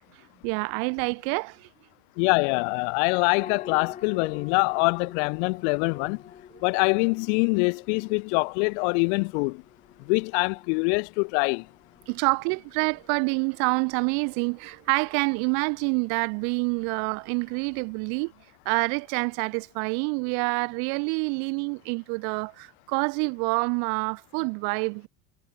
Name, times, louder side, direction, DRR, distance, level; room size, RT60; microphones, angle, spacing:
voice 1, 0.4-1.7 12.1-18.3 18.6-25.1, right 40 dB or more, 60° right, 0.9 m, -27 dB
voice 2, 2.2-6.2 6.6-9.6 10.0-11.7, left 35 dB, 70° left, 0.5 m, -24 dB
sound 1, 3.4-18.2, left 8 dB, 20° left, 3.8 m, -49 dB
cardioid pair, 180°, 35 cm